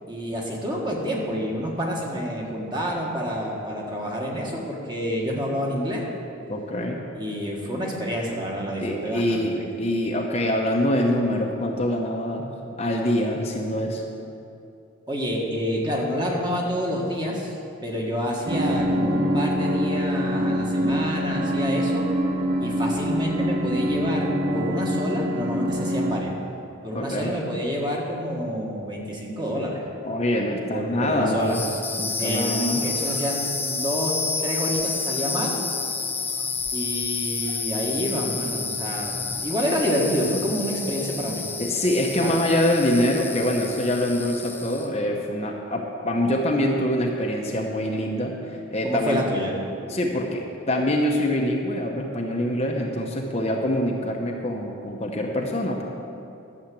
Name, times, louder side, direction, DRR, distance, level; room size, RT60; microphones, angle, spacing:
voice 1, 0.1-6.0 7.1-9.6 15.1-17.5 17.8-22.0 22.6-26.3 26.8-29.8 30.7-31.6 32.2-34.1 34.4-35.6 36.7-41.4 42.2-42.3 48.8-49.5, equal, 20° right, -2 dB, 1.6 m, -28 dB
voice 2, 6.5-7.0 8.8-14.0 26.9-27.3 30.0-31.6 32.0-32.8 41.6-48.3 48.7-49.2 49.9-55.8, left 1 dB, 30° left, 0 dB, 0.8 m, -25 dB
sound 1, 18.5-26.2, equal, 40° right, 0.8 m, -25 dB
sound 2, 31.4-44.9, left 4 dB, 10° left, 0.4 m, -30 dB
12.0 x 7.2 x 7.8 m, 2.7 s
head